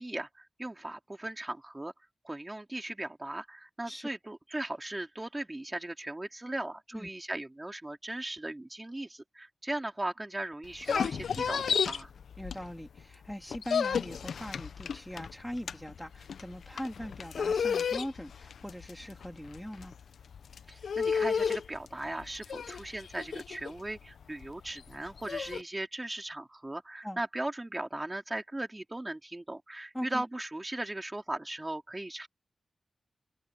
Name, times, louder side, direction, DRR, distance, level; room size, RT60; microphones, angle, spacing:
voice 1, 0.0-1.9 2.2-12.1 20.7-32.3, right 1 dB, 20° right, 4.0 m, -38 dB
sound 1, 10.6-13.0 13.3-25.6, left 6 dB, 85° left, 0.6 m, -33 dB
voice 2, 12.4-19.9 27.0-27.2 29.9-30.2, equal, 5° left, 2.9 m, -41 dB
cardioid pair, 75°, 0 cm